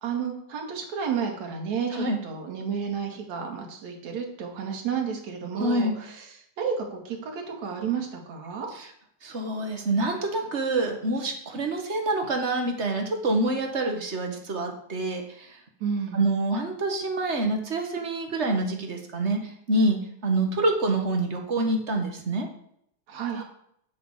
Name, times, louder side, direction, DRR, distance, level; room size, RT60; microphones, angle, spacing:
voice 1, 0.0-6.3 6.6-8.7 15.8-16.3 23.1-23.4, right 6 dB, 70° right, 1 dB, 3.4 m, -31 dB
voice 2, 5.5-5.9 9.2-15.6 16.1-22.5 23.3-23.4, right 2 dB, 30° right, 3 dB, 1.5 m, -26 dB
8.3 x 7.8 x 7.4 m, 0.69 s
omnidirectional pair, 3.3 m